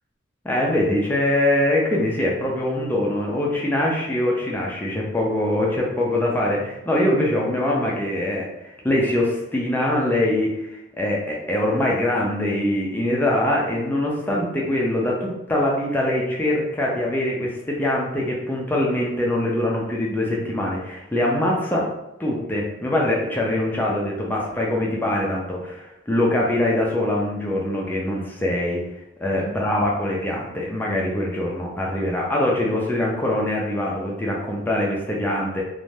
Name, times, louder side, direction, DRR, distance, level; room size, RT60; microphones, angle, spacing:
voice 1, 0.4-21.9 22.2-28.9 29.2-35.6, left 1 dB, 10° left, -3 dB, 0.4 m, -23 dB
2.6 x 2.1 x 3.1 m, 0.91 s
head